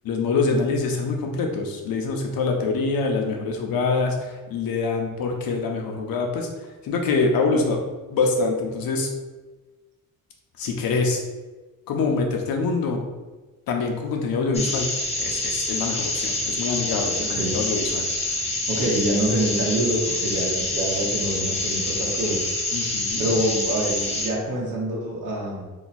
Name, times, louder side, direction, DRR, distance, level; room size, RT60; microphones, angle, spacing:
voice 1, 0.0-6.5 6.8-7.8 8.1-9.1 10.6-11.2 11.9-13.0 13.7-14.9 15.2-18.1 22.7-23.3, left 4 dB, 85° left, 2 dB, 0.7 m, -25 dB
sound 1, 14.5-24.3, left 2 dB, 20° left, 0.5 m, -27 dB
voice 2, 17.2-17.6 18.7-22.5 23.2-25.7, right 1 dB, 65° right, -3 dB, 0.9 m, -26 dB
2.9 x 2.3 x 4.1 m, 1.2 s
wide cardioid pair, 170°, 34 cm